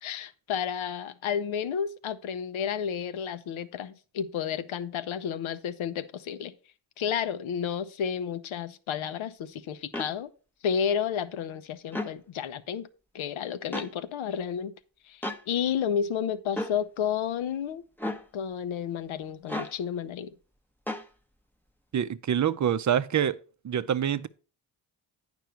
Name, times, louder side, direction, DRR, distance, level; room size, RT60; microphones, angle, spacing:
voice 1, 0.0-6.5 7.0-10.3 10.6-12.9 13.1-14.7 15.1-17.8 18.3-20.3, left 8 dB, 75° left, 0.8 m, -31 dB
sound 1, 9.9-10.1 11.9-12.1 13.7-13.9 15.2-15.4 16.6-16.8 18.0-18.2 19.5-19.8 20.9-21.1, left 1 dB, 5° left, 0.7 m, -33 dB
voice 2, 21.9-23.4 23.6-24.3, right 9 dB, 35° right, 0.6 m, -26 dB
9.1 x 5.3 x 4.5 m
cardioid pair, 60°, 49 cm